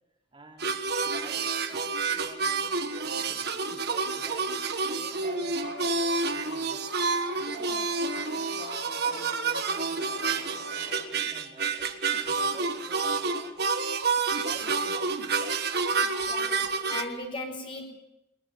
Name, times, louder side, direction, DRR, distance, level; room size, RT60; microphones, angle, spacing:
voice 1, 0.3-0.7 1.0-4.6 4.9-6.9 7.4-13.5 14.4-15.6, right 1 dB, 25° right, -1 dB, 3.3 m, -50 dB
sound 1, 0.6-17.0, right 4 dB, 55° right, 1.5 m, -29 dB
sound 2, 5.2-11.0, left 1 dB, 60° left, 5.2 m, -43 dB
voice 2, 16.3-16.6 16.9-17.8, left 2 dB, 25° left, 3 dB, 4.7 m, -37 dB
22.0 x 20.0 x 7.4 m, 0.89 s
head